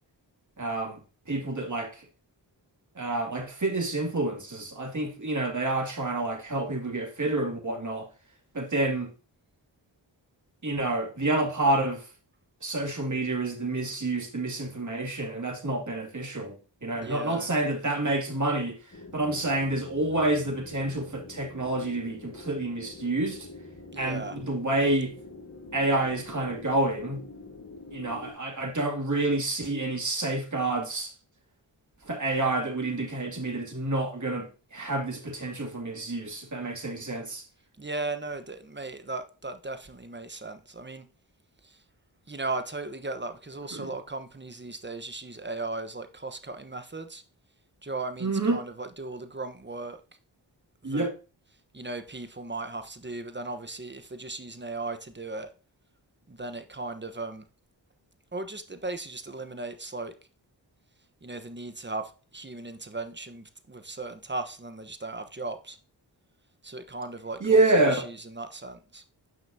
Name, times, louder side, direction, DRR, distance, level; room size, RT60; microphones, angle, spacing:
voice 1, 0.6-1.0 1.3-2.0 2.9-8.1 8.5-9.1 10.6-12.1 12.6-18.8 19.1-23.5 24.0-25.1 25.7-27.2 27.9-31.1 32.0-37.4 43.7-43.9 48.2-48.6 50.8-51.1 67.4-68.1, right 2 dB, 40° right, 2.7 m, -28 dB
voice 2, 16.9-17.5 23.9-24.4 37.8-41.0 41.6-41.8 42.3-47.2 47.8-50.0 50.8-51.1 51.7-55.5 56.3-57.4 58.3-60.1 61.2-65.8 66.6-69.0, right 3 dB, 25° right, 1.2 m, -37 dB
sound 1, 18.9-28.3, left 3 dB, 40° left, 3.2 m, -45 dB
9.2 x 5.8 x 2.8 m
cardioid pair, 40°, 45 cm